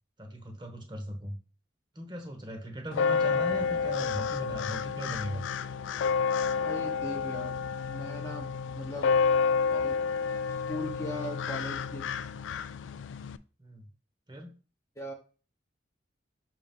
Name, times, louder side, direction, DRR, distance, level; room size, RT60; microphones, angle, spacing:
voice 1, 0.2-1.4 1.9-5.4 13.6-13.8 14.3-14.5, equal, 25° right, 4 dB, 1.2 m, -38 dB
sound 1, 2.9-13.4, left 5 dB, 80° left, 0.3 m, -30 dB
voice 2, 6.5-7.6 7.9-8.5 8.7-9.1 9.7-10.0 10.5-12.1 15.0-15.1, left 1 dB, 15° left, 0 dB, 0.9 m, -39 dB
6.3 x 3.0 x 5.4 m, 0.36 s
head